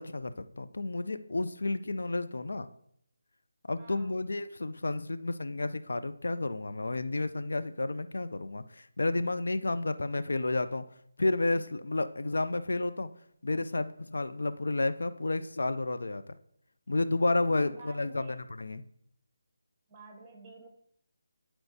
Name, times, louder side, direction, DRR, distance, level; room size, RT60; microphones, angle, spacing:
voice 1, 0.0-2.7 3.7-10.8 11.2-13.1 13.4-16.2 16.9-18.3 18.6-18.8, left 2 dB, 70° left, 11 dB, 0.4 m, -31 dB
voice 2, 3.8-4.3 17.6-18.4 19.9-20.7, right 3 dB, 15° right, 2 dB, 1.0 m, -50 dB
9.6 x 4.4 x 2.7 m, 0.69 s
figure-of-eight pair, 155°, 0 cm